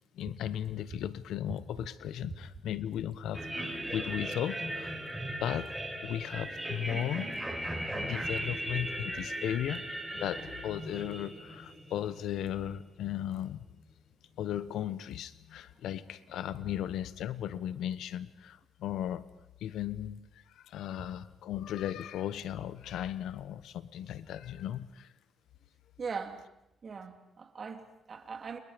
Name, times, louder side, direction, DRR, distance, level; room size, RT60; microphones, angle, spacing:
voice 1, 0.1-5.0 5.4-5.7 6.0-7.4 8.0-9.8 10.1-13.6 14.4-19.3 19.6-25.1, left 11 dB, 85° left, 1.1 m, -36 dB
sound 1, 3.3-12.7, right 1 dB, 5° right, 5.5 m, -38 dB
voice 2, 26.0-26.4 26.8-28.6, right 5 dB, 40° right, 3.1 m, -40 dB
30.0 x 28.0 x 5.2 m
cardioid pair, 110°, 0 cm